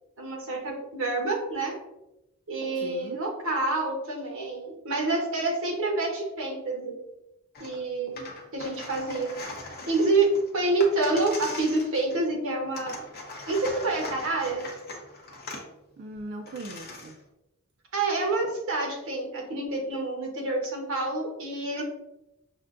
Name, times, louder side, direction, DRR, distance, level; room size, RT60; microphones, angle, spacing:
voice 1, 0.2-1.7 2.5-6.9 7.6-8.3 8.5-9.3 9.9-10.3 10.5-13.1 13.5-14.6 17.9-21.8, right 2 dB, 70° right, 0 dB, 1.0 m, -28 dB
voice 2, 2.8-3.2 16.0-17.2 21.7-21.8, right 2 dB, 50° right, 3 dB, 0.3 m, -39 dB
sound 1, 7.5-7.8 8.1-12.3 12.8-15.7 16.2-16.3 16.5-17.2, left 3 dB, 50° left, 0.8 m, -41 dB
6.3 x 2.2 x 2.4 m, 0.92 s
head